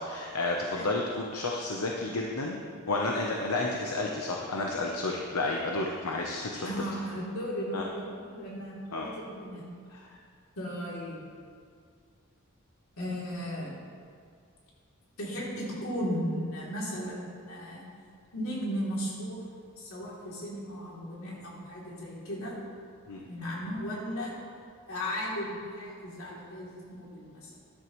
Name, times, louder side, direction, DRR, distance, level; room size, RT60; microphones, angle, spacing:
voice 1, 0.0-2.6 2.9-6.7 7.7-7.8 8.9-9.1 10.0-10.2 23.1-23.2, left 2 dB, 90° left, -1 dB, 0.9 m, -31 dB
voice 2, 6.6-9.6 10.5-11.2 13.0-13.7 15.2-17.8 18.3-19.5 19.8-22.6 23.2-24.3 24.9-27.6, equal, 70° left, -5 dB, 3.2 m, -36 dB
13.5 x 11.0 x 3.2 m, 2.2 s
head